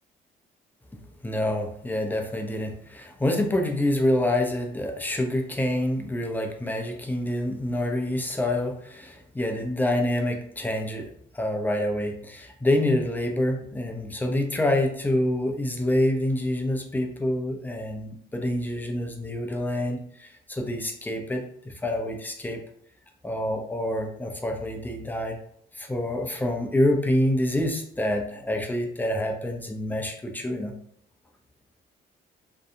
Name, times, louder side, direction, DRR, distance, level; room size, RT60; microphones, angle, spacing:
voice 1, 1.2-11.1 11.3-22.6 23.2-25.4 25.8-30.7, left 1 dB, 10° left, 3 dB, 0.5 m, -27 dB
2.7 x 2.2 x 2.6 m, 0.67 s
cardioid pair, 90°, 20 cm